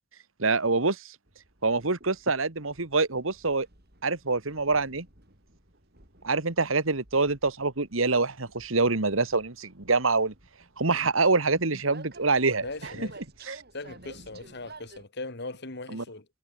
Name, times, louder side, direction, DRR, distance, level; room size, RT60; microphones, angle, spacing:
voice 1, 0.4-1.0 1.6-3.7 4.0-5.1 6.2-10.3 10.8-12.6 13.0-13.1 13.5-13.6 15.9-16.0, right 3 dB, 80° right, 2.0 m, -25 dB
Train, 1.3-15.0, right 2 dB, 50° right, 7.8 m, -51 dB
voice 2, 12.6-13.2 13.7-16.3, left 2 dB, 55° left, 2.5 m, -39 dB
head